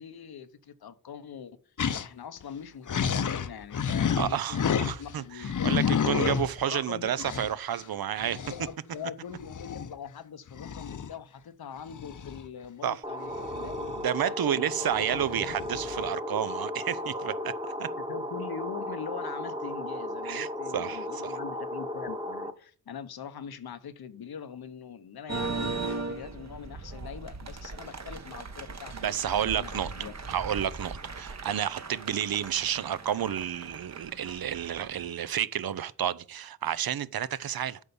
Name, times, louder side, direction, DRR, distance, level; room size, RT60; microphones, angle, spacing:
voice 1, 0.0-1.6 2.0-7.2 8.2-13.9 14.2-15.6 18.0-30.1, left 7 dB, 90° left, 0.9 m, -42 dB
sound 1, 1.8-2.1 2.4-2.5 2.9-5.1 5.4-6.7 7.2-7.5 8.2-8.7 9.4-9.9 10.5-11.1 11.9-12.5 13.3-14.2 14.9-16.1, left 7 dB, 55° left, 0.7 m, -30 dB
voice 2, 4.2-8.4 12.8-13.0 14.0-17.5 17.8-17.9 20.2-21.4 28.9-29.9 30.3-37.8, right 10 dB, 75° right, 0.6 m, -31 dB
sound 2, 13.0-22.5, left 1 dB, 15° right, 1.1 m, -35 dB
sound 3, 25.3-35.1, right 3 dB, 45° right, 1.1 m, -38 dB
8.2 x 5.5 x 6.9 m
cardioid pair, 60°, 36 cm